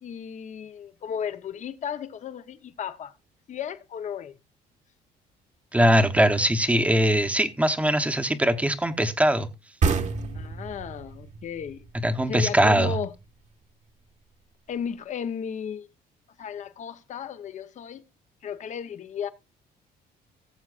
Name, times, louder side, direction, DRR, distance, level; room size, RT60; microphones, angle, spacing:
voice 1, 0.0-3.1 3.5-4.3 10.3-11.8 12.3-13.1 14.7-15.9 16.4-18.0 18.4-19.3, left 8 dB, 45° left, 0.8 m, -34 dB
voice 2, 5.7-9.5 12.0-13.0, equal, 10° right, 0.9 m, -21 dB
sound 1, 9.8-13.2, right 5 dB, 45° right, 1.3 m, -29 dB
18.0 x 7.3 x 2.4 m
cardioid pair, 110°, 17 cm